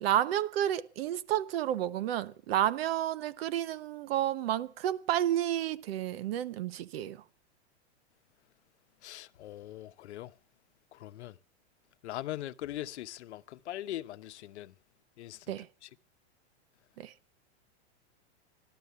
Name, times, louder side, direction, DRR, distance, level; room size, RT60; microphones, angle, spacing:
voice 1, 0.0-7.2 15.5-15.7 17.0-17.1, right 12 dB, 60° right, 1.0 m, -31 dB
voice 2, 9.0-10.3 10.9-11.3 12.0-14.7 15.2-15.6 15.8-15.9, left 14 dB, 80° left, 0.9 m, -41 dB
15.0 x 12.0 x 6.8 m
supercardioid pair, 155°, 33 cm